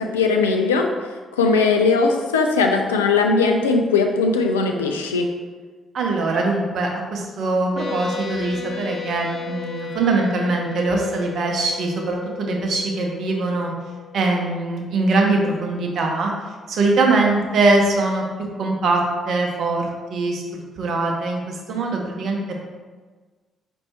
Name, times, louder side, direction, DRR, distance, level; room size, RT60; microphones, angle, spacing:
voice 1, 0.0-5.3, left 4 dB, 85° left, 3 dB, 0.3 m, -19 dB
voice 2, 5.9-13.7 14.1-16.3 16.7-18.2 18.6-22.5, right 3 dB, 60° right, 0 dB, 0.7 m, -22 dB
sound 1, 7.8-15.8, left 10 dB, 50° left, 0.7 m, -36 dB
4.5 x 2.6 x 4.3 m, 1.4 s
hypercardioid pair, 40°, 0 cm